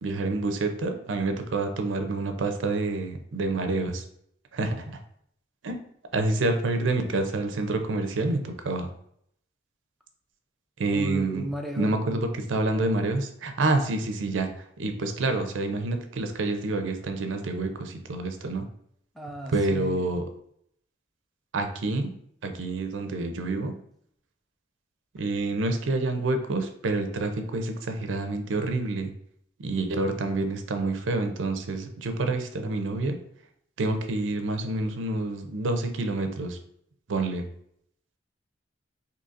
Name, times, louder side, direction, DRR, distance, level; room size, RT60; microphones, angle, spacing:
voice 1, 0.0-4.0 4.5-4.9 5.6-5.8 6.1-8.9 10.8-11.4 11.8-14.5 14.8-18.7 19.5-20.2 21.5-22.1 22.4-23.7 25.2-29.1 29.6-33.2 33.8-36.6 37.1-37.4, right 2 dB, 80° right, 7 dB, 0.5 m, -28 dB
voice 2, 10.9-12.0 19.1-20.1, right 1 dB, ahead, 1 dB, 0.4 m, -34 dB
3.9 x 2.8 x 2.5 m, 0.70 s
head